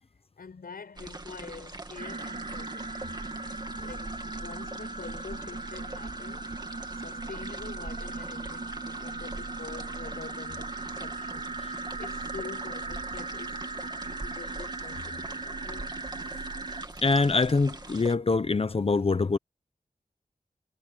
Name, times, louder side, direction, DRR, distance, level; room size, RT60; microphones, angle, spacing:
voice 1, 0.4-3.2 3.8-6.5 6.9-16.0, left 5 dB, 90° left, 6.0 m, -46 dB
sound 1, 1.0-18.2, right 2 dB, 30° right, 2.3 m, -43 dB
sound 2, 2.0-16.8, right 3 dB, 45° right, 1.6 m, -38 dB
voice 2, 17.0-19.4, left 3 dB, 40° left, 0.8 m, -24 dB
wide cardioid pair, 75°, 15 cm